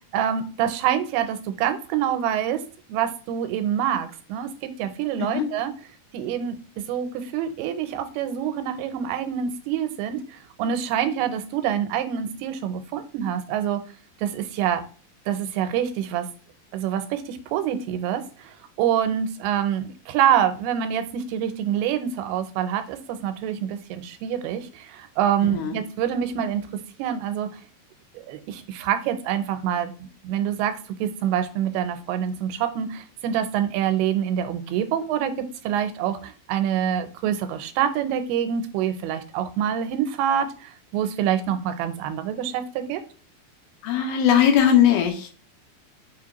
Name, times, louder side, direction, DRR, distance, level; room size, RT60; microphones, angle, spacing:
voice 1, 0.1-2.6 2.9-5.7 6.1-6.6 6.9-13.8 14.2-14.8 15.3-16.3 16.7-27.5 28.3-29.9 30.2-35.3 35.6-43.0, right 9 dB, 85° right, 10 dB, 2.5 m, -26 dB
voice 2, 43.8-45.3, left 9 dB, 85° left, 6 dB, 2.5 m, -19 dB
5.7 x 2.5 x 2.9 m, 0.39 s
omnidirectional pair, 4.4 m